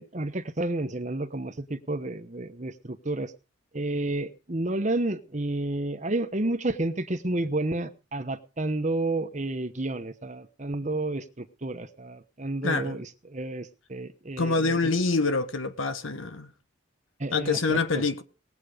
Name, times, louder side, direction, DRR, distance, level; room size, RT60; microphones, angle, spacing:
voice 1, 0.0-3.3 3.7-14.9 17.2-18.0, right 2 dB, 35° right, 1.0 m, -31 dB
voice 2, 12.6-13.0 14.4-16.5 17.3-18.2, left 3 dB, 75° left, 1.3 m, -26 dB
19.0 x 8.3 x 5.1 m
head